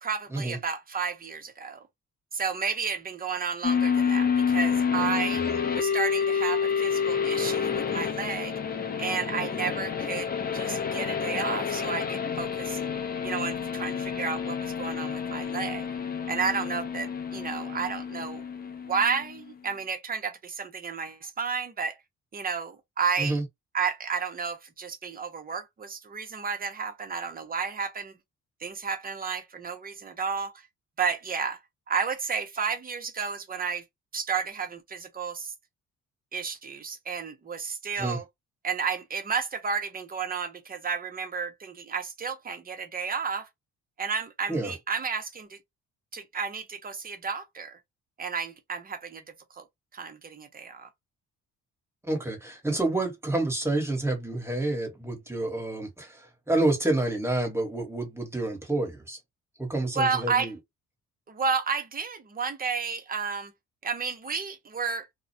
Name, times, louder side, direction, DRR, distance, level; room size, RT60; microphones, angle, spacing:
voice 1, 0.0-1.8 2.3-5.4 5.7-8.6 9.0-12.8 13.2-15.9 16.3-18.5 18.9-22.0 22.3-23.4 23.7-28.1 28.6-30.5 31.0-31.6 31.9-33.8 34.1-35.5 36.3-38.2 38.6-43.5 44.0-45.6 46.1-47.8 48.2-49.2 49.6-49.7 49.9-50.9 59.9-60.5 61.3-63.5 63.8-65.1, right 5 dB, 30° right, 0.7 m, -32 dB
sound 1, 3.6-19.4, left 6 dB, 30° left, 0.5 m, -29 dB
voice 2, 52.0-59.2 59.6-60.5, right 2 dB, 10° right, 1.2 m, -28 dB
2.3 x 2.1 x 2.6 m
cardioid pair, 90°, 30 cm